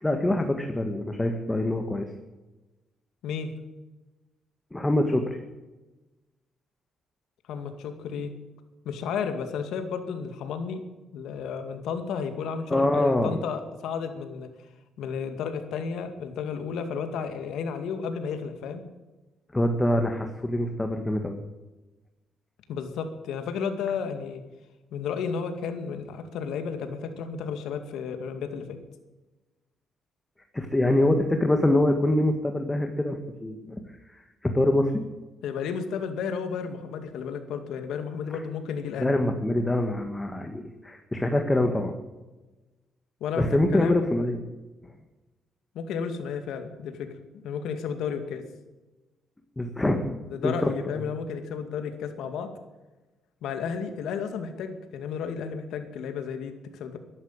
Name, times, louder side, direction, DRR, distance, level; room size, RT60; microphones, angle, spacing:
voice 1, 0.0-2.1 4.7-5.4 12.7-13.4 19.5-21.4 30.5-33.8 34.1-34.2 34.5-34.9 39.0-41.9 43.4-44.4 49.6-50.0 50.4-50.7, left 1 dB, 15° left, 5 dB, 1.7 m, -24 dB
voice 2, 7.5-8.3 8.8-10.8 11.1-14.5 15.0-18.8 22.7-24.4 24.9-28.8 35.4-39.1 43.2-43.5 43.7-44.1 45.7-47.1 47.4-48.4 50.2-52.5 53.4-57.0, left 6 dB, 85° left, 7 dB, 2.2 m, -32 dB
13.0 x 11.5 x 8.8 m, 1.1 s
cardioid pair, 105°, 0 cm